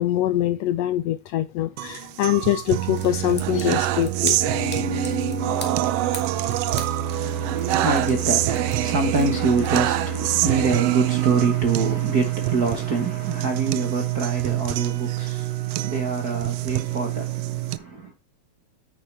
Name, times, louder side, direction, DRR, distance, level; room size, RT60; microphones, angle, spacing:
voice 1, 0.0-4.4, left 12 dB, 75° left, 1.5 m, -23 dB
sound 1, 1.8-17.8, right 15 dB, 80° right, 1.5 m, -25 dB
sound 2, 2.9-10.1, left 1 dB, 5° left, 1.7 m, -41 dB
Wind instrument woodwind instrument, 4.4-11.0, left 7 dB, 60° left, 3.1 m, -37 dB
voice 2, 7.0-18.1, right 3 dB, 50° right, 1.1 m, -26 dB
8.9 x 8.6 x 3.3 m
omnidirectional pair, 3.3 m